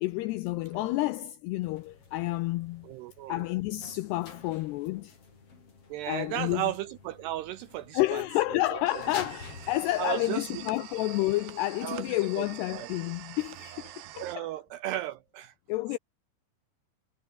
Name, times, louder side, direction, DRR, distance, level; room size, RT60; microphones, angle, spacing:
voice 1, 0.0-2.9 3.3-5.2 6.1-6.7 7.9-14.5 15.7-16.0, left 18 dB, 90° left, 2.3 m, -30 dB
sound 1, 1.6-12.3, left 4 dB, 30° left, 5.1 m, -50 dB
voice 2, 2.8-3.5 5.9-8.2 8.7-8.8 10.0-10.6 11.8-12.5 12.7-12.9 14.2-15.5, right 14 dB, 90° right, 2.4 m, -35 dB
sound 2, 8.9-14.4, right 13 dB, 70° right, 3.4 m, -46 dB
omnidirectional pair, 5.6 m